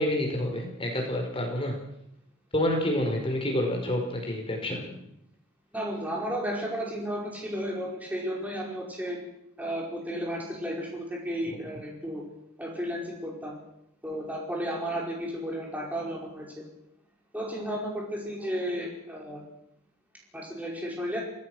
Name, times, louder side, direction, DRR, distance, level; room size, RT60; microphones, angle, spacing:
voice 1, 0.0-1.7 2.5-5.0 11.4-11.6, left 1 dB, 25° left, 2 dB, 4.8 m, -28 dB
voice 2, 5.7-9.2 9.6-12.2 12.6-13.6 14.0-16.6 17.3-19.4 20.3-21.2, equal, 5° right, -2 dB, 5.2 m, -33 dB
25.5 x 18.0 x 6.3 m, 0.78 s
head